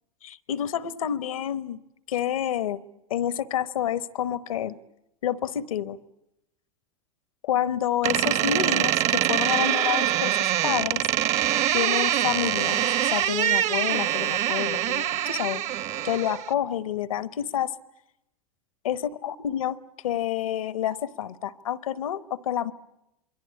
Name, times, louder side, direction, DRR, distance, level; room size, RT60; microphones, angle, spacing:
voice 1, 0.2-1.8 2.1-2.8 3.1-4.8 5.2-6.0 7.4-11.1 11.7-15.6 16.0-17.8 18.8-19.8 20.0-22.7, left 10 dB, 80° left, 14 dB, 1.2 m, -28 dB
Door, 8.0-16.5, right 12 dB, 40° right, 1.0 m, -24 dB
27.5 x 22.5 x 8.4 m, 0.88 s
hypercardioid pair, 100°, 18 cm